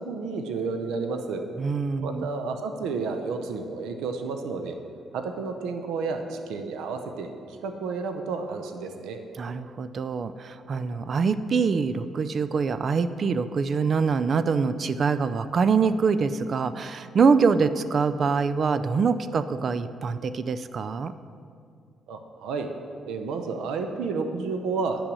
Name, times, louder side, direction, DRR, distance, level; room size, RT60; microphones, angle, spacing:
voice 1, 0.0-1.4 2.0-4.8 5.1-9.2 22.1-22.7 23.1-25.0, right 4 dB, 85° right, 6 dB, 0.7 m, -31 dB
voice 2, 1.6-2.3 9.4-21.1, right 5 dB, 50° right, 12 dB, 0.5 m, -24 dB
9.9 x 6.1 x 6.2 m, 2.3 s
cardioid pair, 90°, 0 cm